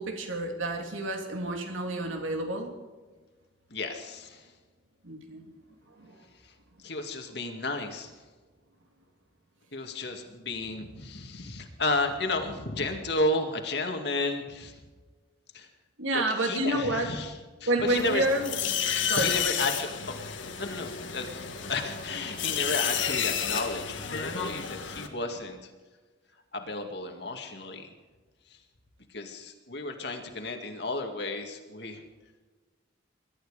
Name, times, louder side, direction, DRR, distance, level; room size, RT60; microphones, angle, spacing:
voice 1, 0.0-2.7 5.0-5.5 6.0-6.2 16.0-17.1 17.7-18.6 19.0-19.4, right 1 dB, 90° right, 3 dB, 3.1 m, -29 dB
voice 2, 3.7-4.5 6.8-8.1 9.7-14.8 15.5-15.7 16.1-17.3 17.6-18.3 18.9-19.9 20.6-25.7 26.5-27.9 28.5-28.6 29.1-32.0, left 2 dB, 55° left, 4 dB, 2.2 m, -33 dB
sound 1, 17.9-25.1, left 8 dB, 75° left, 1.7 m, -31 dB
22.0 x 12.5 x 5.1 m, 1.3 s
head